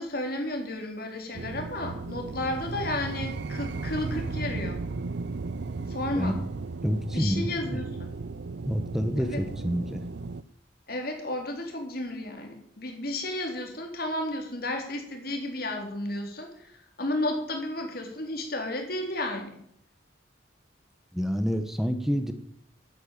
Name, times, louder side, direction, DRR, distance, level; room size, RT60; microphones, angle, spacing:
voice 1, 0.0-4.8 5.9-6.4 7.1-8.1 9.2-9.4 10.9-19.6, left 1 dB, 50° left, 3 dB, 3.6 m, -33 dB
sound 1, 1.3-10.4, right 3 dB, 65° right, 0.5 m, -35 dB
voice 2, 6.8-7.8 8.6-10.0 21.1-22.3, equal, ahead, 8 dB, 1.2 m, -28 dB
12.0 x 9.2 x 9.2 m, 0.68 s
head